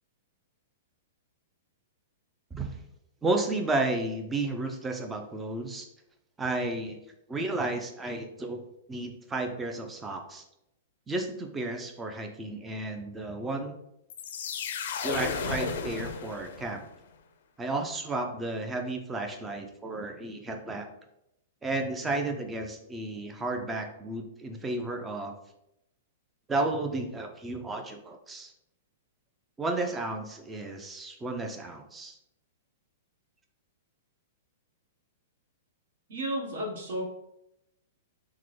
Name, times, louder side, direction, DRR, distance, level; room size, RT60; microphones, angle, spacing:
voice 1, 3.2-5.9 6.4-7.0 7.3-8.6 8.9-10.4 11.1-13.8 15.0-16.8 17.6-20.9 21.6-25.3 26.5-28.5 29.6-32.2, right 2 dB, 10° right, 4 dB, 0.4 m, -32 dB
sound 1, 14.1-16.9, left 6 dB, 60° left, 0.4 m, -34 dB
voice 2, 36.1-37.0, right 1 dB, 65° right, -2 dB, 1.2 m, -32 dB
3.6 x 2.1 x 3.1 m, 0.84 s
hypercardioid pair, 155°, 0 cm